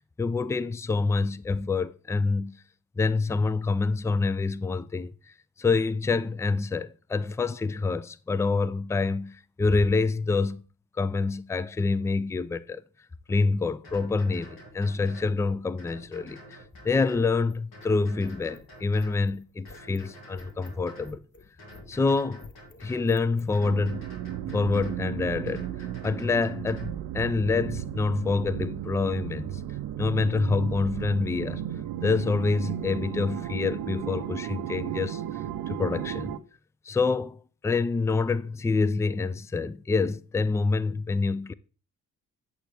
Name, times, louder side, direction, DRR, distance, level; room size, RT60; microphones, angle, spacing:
voice 1, 0.2-2.6 3.0-5.1 5.6-10.6 11.0-12.8 13.3-16.6 16.8-21.2 21.9-22.5 22.8-24.1 24.5-29.6 30.0-31.6 32.0-35.4 35.7-36.4 36.9-41.5, left 4 dB, 10° left, 0.4 m, -27 dB
sound 1, 13.3-13.4 13.8-15.4 15.8-17.3 17.7-19.2 19.6-21.2 21.6-23.1 23.5-25.0 25.5-27.0, equal, 80° left, 2.7 m, -48 dB
sound 2, 16.7-23.6, left 4 dB, 30° left, 0.9 m, -52 dB
sound 3, 23.6-36.4, right 11 dB, 80° right, 0.6 m, -34 dB
8.7 x 6.6 x 3.4 m
supercardioid pair, 55°, 36 cm